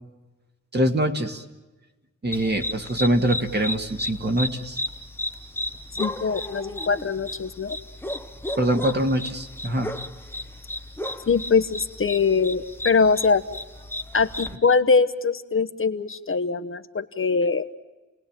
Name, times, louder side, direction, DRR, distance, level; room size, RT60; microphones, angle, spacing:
voice 1, 0.7-1.4 2.2-4.8 8.6-9.9, right 1 dB, 35° right, 5 dB, 2.1 m, -24 dB
sound 1, 2.3-14.6, left 1 dB, 5° left, 1.0 m, -34 dB
voice 2, 6.0-7.8 11.3-13.4 14.1-17.7, left 5 dB, 45° left, 9 dB, 1.0 m, -22 dB
30.0 x 19.5 x 9.0 m, 1.2 s
wide cardioid pair, 155°, 30 cm